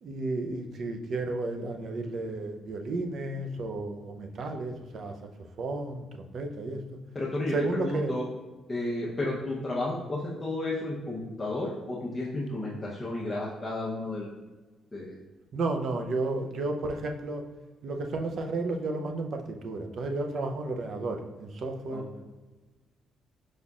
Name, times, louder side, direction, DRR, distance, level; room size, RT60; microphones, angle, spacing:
voice 1, 0.0-5.2 5.6-6.8 7.5-8.1 15.5-17.4 17.8-22.0, right 2 dB, 60° right, 4 dB, 0.5 m, -32 dB
voice 2, 7.1-8.3 8.7-14.3 14.9-15.1 21.9-22.2, left 2 dB, 25° left, -6 dB, 0.8 m, -32 dB
4.9 x 4.1 x 2.4 m, 1.2 s
cardioid pair, 90°, 0 cm